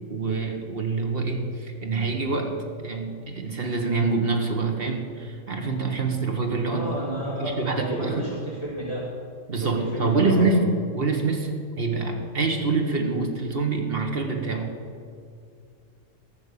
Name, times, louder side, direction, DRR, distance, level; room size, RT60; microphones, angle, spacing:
voice 1, 0.1-7.0 7.3-8.2 9.5-14.8, right 3 dB, 50° right, 3 dB, 1.5 m, -26 dB
voice 2, 6.7-9.0 9.9-10.5, equal, 30° left, -7 dB, 2.6 m, -31 dB
13.5 x 6.3 x 8.4 m, 2.2 s
omnidirectional pair, 1.4 m